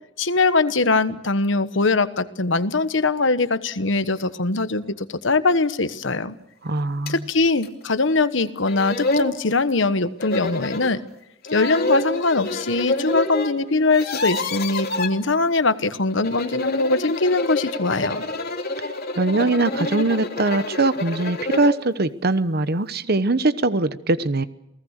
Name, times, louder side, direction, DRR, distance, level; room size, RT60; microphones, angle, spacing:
voice 1, 0.2-6.3 7.1-11.0 11.5-18.2, left 3 dB, 70° left, 13 dB, 1.2 m, -22 dB
voice 2, 6.6-7.2 18.8-18.9 19.2-24.4, right 2 dB, 55° right, 14 dB, 1.1 m, -22 dB
sound 1, 7.1-7.2 7.6-7.7 8.4-8.5 8.7-9.3 10.2-10.9 11.5-13.5 13.8-15.1 16.1-21.8, left 2 dB, 50° left, 3.1 m, -27 dB
29.0 x 19.0 x 6.6 m, 0.82 s
head